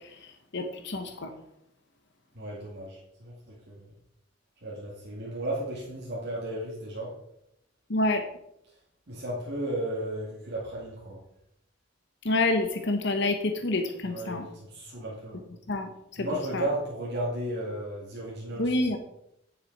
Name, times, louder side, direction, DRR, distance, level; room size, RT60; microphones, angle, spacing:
voice 1, 0.2-1.3 7.9-8.2 12.2-14.5 15.7-16.3 16.5-16.6 18.6-19.0, left 2 dB, 65° left, 6 dB, 1.0 m, -28 dB
voice 2, 2.3-3.9 4.6-7.1 9.1-11.2 14.0-15.4 16.2-19.0, right 1 dB, 60° right, -5 dB, 2.2 m, -34 dB
9.6 x 6.8 x 4.6 m, 0.78 s
head